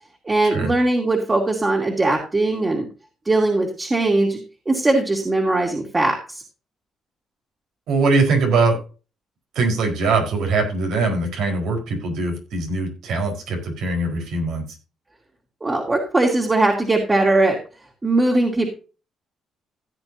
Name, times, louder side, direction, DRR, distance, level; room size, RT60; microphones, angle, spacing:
voice 1, 0.2-2.9 3.3-4.4 4.7-6.4 15.6-17.6 18.0-18.7, right 2 dB, 25° right, 0 dB, 2.6 m, -20 dB
voice 2, 7.9-8.8 9.5-14.6, right 3 dB, 80° right, 2 dB, 4.7 m, -22 dB
16.0 x 8.0 x 2.8 m, 0.34 s
cardioid pair, 90°, 0 cm